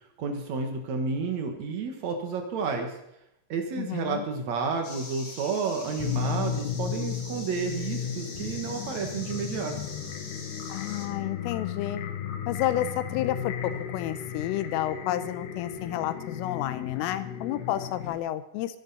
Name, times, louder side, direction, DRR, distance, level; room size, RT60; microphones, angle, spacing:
voice 1, 0.2-2.9 3.5-9.8, right 5 dB, 85° right, 3 dB, 1.5 m, -31 dB
voice 2, 3.8-4.2 10.7-12.0 12.5-18.8, left 13 dB, 85° left, 13 dB, 3.3 m, -31 dB
sound 1, 4.8-11.1, left 3 dB, 40° left, 3.0 m, -43 dB
sound 2, 6.0-18.2, left 8 dB, 65° left, 3.2 m, -34 dB
24.5 x 11.5 x 4.2 m, 0.80 s
omnidirectional pair, 6.0 m